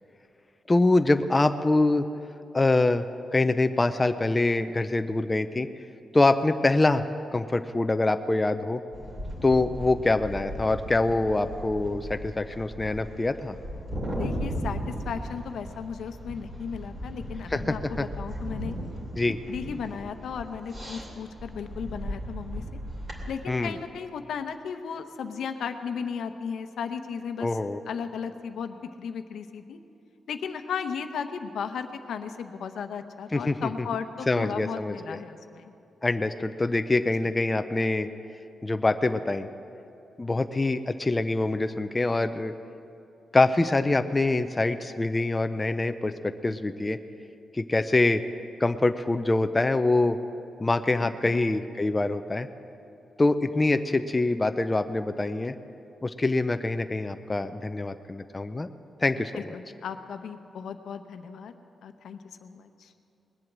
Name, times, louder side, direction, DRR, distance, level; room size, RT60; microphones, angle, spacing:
voice 1, 0.7-2.1 2.5-3.0 3.3-5.7 6.1-7.0 7.3-8.8 9.4-13.6 17.5-18.1 19.2-19.4 23.5-23.8 27.4-27.8 33.3-33.7 34.3-35.2 36.0-38.1 38.6-39.5 40.2-42.5 43.3-47.0 47.5-48.2 48.6-50.2 50.6-52.5 53.2-55.5 56.0-58.7 59.0-59.5, left 2 dB, 20° left, 8 dB, 0.4 m, -25 dB
sound 1, 8.9-23.3, equal, 30° right, 2.8 m, -36 dB
voice 2, 14.1-18.7 19.5-22.6 23.3-27.5 27.9-29.8 30.3-35.7 51.0-51.4 59.3-61.5 61.8-62.9, left 6 dB, 80° left, 8 dB, 0.8 m, -35 dB
20.0 x 7.9 x 7.3 m, 2.8 s
cardioid pair, 125°, 0 cm